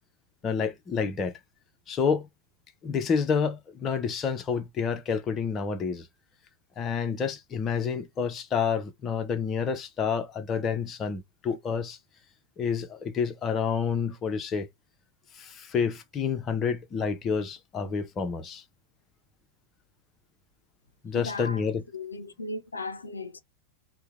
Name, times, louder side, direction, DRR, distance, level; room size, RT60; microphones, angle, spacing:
voice 1, 0.4-1.3 1.9-2.3 2.8-6.1 6.8-12.0 12.6-14.7 15.3-18.6 21.0-21.8, left 6 dB, 25° left, 0.5 m, -29 dB
voice 2, 21.1-23.4, left 2 dB, 80° left, 0.4 m, -37 dB
2.8 x 2.0 x 3.3 m
figure-of-eight pair, 90°, 0 cm